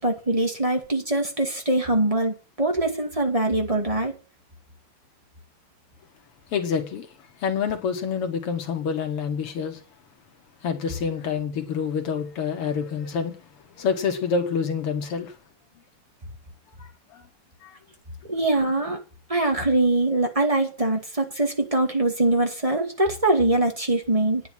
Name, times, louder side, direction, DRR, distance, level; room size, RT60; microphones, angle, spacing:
voice 1, 0.0-4.1 18.3-19.0 19.3-24.4, right 2 dB, 15° right, 2.1 m, -23 dB
voice 2, 6.5-7.1 7.4-9.8 10.6-13.4 13.8-15.4 16.8-17.3 17.6-17.8, left 6 dB, 85° left, 2.5 m, -27 dB
9.6 x 9.3 x 7.4 m
omnidirectional pair, 2.4 m